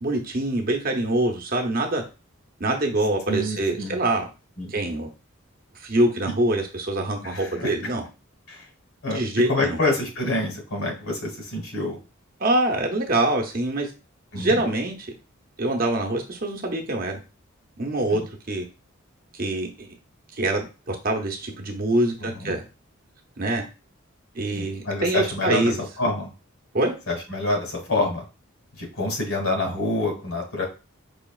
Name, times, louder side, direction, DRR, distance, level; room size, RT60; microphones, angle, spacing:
voice 1, 0.0-2.0 2.6-4.3 4.7-5.1 5.8-8.1 9.1-9.8 12.4-13.9 14.3-14.9 15.6-17.2 17.8-18.2 18.5-18.7 19.4-19.9 20.4-22.6 23.4-23.7 24.3-25.8 26.7-26.9, right 1 dB, 45° right, 2 dB, 0.7 m, -24 dB
voice 2, 3.3-4.0 4.6-4.7 7.2-7.7 8.5-8.6 9.0-9.2 9.5-12.0 14.3-14.5 18.1-18.2 22.4-22.6 24.5-26.3 27.1-28.2 28.8-30.6, left 2 dB, 75° left, 2 dB, 1.7 m, -27 dB
5.0 x 2.9 x 2.3 m, 0.30 s
head